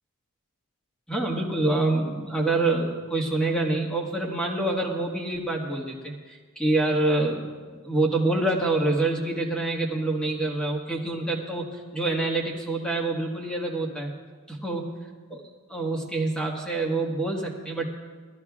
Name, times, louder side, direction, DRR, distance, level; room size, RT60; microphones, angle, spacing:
voice 1, 1.1-6.0 6.3-7.5 7.8-14.1 14.5-15.0 15.3-15.4 15.7-17.9, right 2 dB, 5° left, -1 dB, 1.5 m, -26 dB
20.5 x 14.0 x 2.4 m, 1.5 s
head